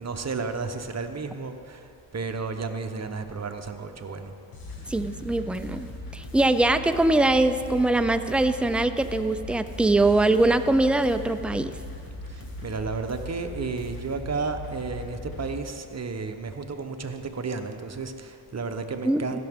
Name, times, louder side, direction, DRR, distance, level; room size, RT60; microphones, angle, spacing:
voice 1, 0.0-4.3 12.3-19.5, right 4 dB, 35° right, 6 dB, 0.9 m, -33 dB
sound 1, 4.5-15.5, left 1 dB, 45° left, 1.8 m, -39 dB
voice 2, 4.9-11.7 19.0-19.2, right 2 dB, 5° right, 10 dB, 0.4 m, -22 dB
15.5 x 6.0 x 3.6 m, 2.5 s
supercardioid pair, 45°, 47 cm